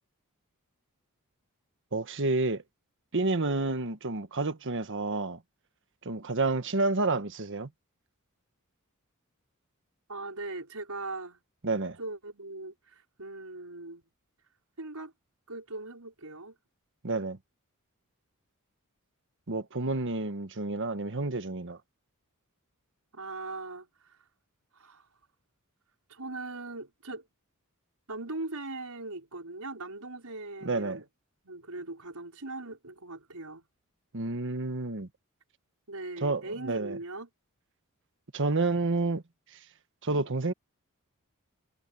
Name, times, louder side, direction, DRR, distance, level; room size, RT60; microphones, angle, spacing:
voice 1, 1.9-2.6 3.1-5.4 6.0-7.7 11.6-12.0 17.0-17.4 19.5-21.8 30.6-31.0 34.1-35.1 36.2-37.0 38.3-39.2 40.0-40.5, right 3 dB, 60° right, 1.4 m, -29 dB
voice 2, 10.1-11.4 12.0-14.0 14.8-15.1 15.5-16.5 23.1-24.1 24.7-25.1 26.1-27.2 28.1-31.0 31.4-33.6 35.9-37.3, right 2 dB, 85° right, 5.5 m, -40 dB
head